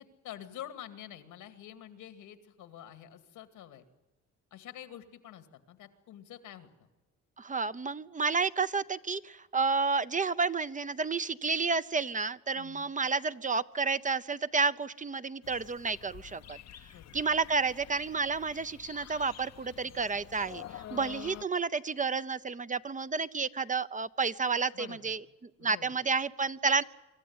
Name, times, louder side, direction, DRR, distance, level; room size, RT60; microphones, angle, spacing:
voice 1, 0.0-3.9 4.5-6.7 12.5-12.9 16.8-17.2 24.7-25.1 25.6-26.0, left 11 dB, 90° left, 9 dB, 2.3 m, -47 dB
voice 2, 7.4-16.6 17.1-25.2 25.6-26.8, right 4 dB, 25° right, 14 dB, 0.7 m, -31 dB
sound 1, 15.4-21.4, left 11 dB, 60° left, 0.8 m, -48 dB
25.0 x 14.0 x 9.5 m, 1.2 s
cardioid pair, 90°, 30 cm